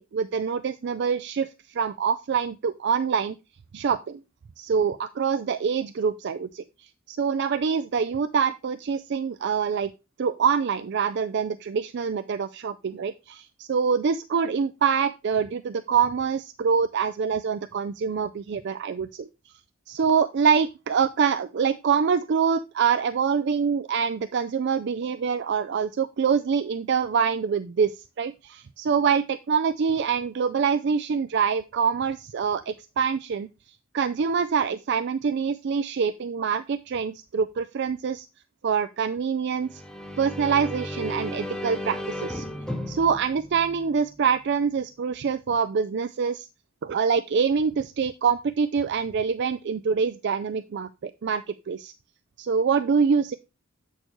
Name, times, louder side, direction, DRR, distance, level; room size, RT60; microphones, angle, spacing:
voice 1, 0.0-3.4 3.7-4.2 4.6-6.6 7.1-9.9 10.2-19.3 19.9-27.9 28.2-33.5 33.9-38.3 38.6-39.8 40.2-42.5 42.9-46.5 46.8-51.9 52.4-53.3, right 6 dB, 55° right, 12 dB, 0.4 m, -25 dB
sound 1, 39.6-44.4, left 1 dB, 5° left, 0.9 m, -35 dB
7.8 x 6.4 x 3.0 m, 0.27 s
head